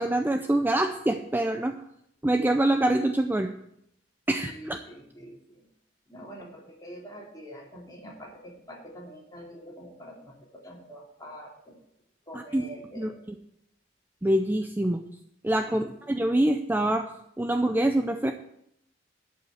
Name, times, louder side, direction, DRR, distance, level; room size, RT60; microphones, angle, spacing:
voice 1, 0.0-1.7 2.2-3.5 4.3-4.8 12.3-12.6 13.0-13.1 14.2-15.0 15.4-18.3, right 1 dB, 10° right, 6 dB, 0.5 m, -25 dB
voice 2, 4.4-5.6 6.1-11.7 12.3-13.2 15.7-15.9, equal, 20° left, -3 dB, 2.9 m, -45 dB
11.5 x 5.6 x 8.0 m, 0.76 s
head